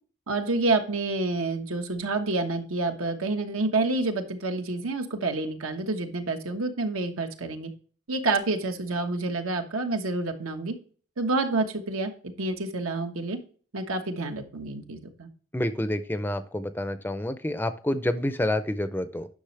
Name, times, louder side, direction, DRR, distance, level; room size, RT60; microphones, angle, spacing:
voice 1, 0.3-7.7 8.1-10.8 11.2-12.1 12.4-13.4 13.7-15.3, right 3 dB, 85° right, 5 dB, 1.3 m, -28 dB
voice 2, 15.5-19.3, left 1 dB, 10° left, 11 dB, 0.5 m, -28 dB
10.0 x 6.2 x 3.3 m, 0.43 s
head